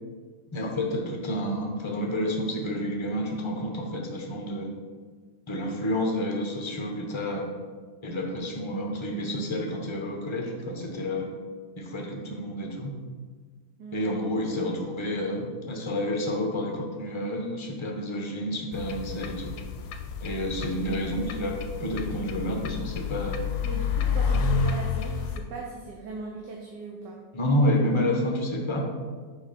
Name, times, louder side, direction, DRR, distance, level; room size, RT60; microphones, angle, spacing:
voice 1, 0.5-4.7 5.5-7.4 8.0-11.3 11.8-12.9 13.9-19.5 20.2-23.4 27.3-28.8, left 1 dB, 30° left, 1 dB, 0.5 m, -29 dB
voice 2, 13.8-14.1 23.6-27.2, right 3 dB, 75° right, -1 dB, 1.4 m, -39 dB
sound 1, 18.7-25.4, left 5 dB, 70° left, 1.1 m, -30 dB
6.3 x 5.2 x 4.2 m, 1.5 s
omnidirectional pair, 1.9 m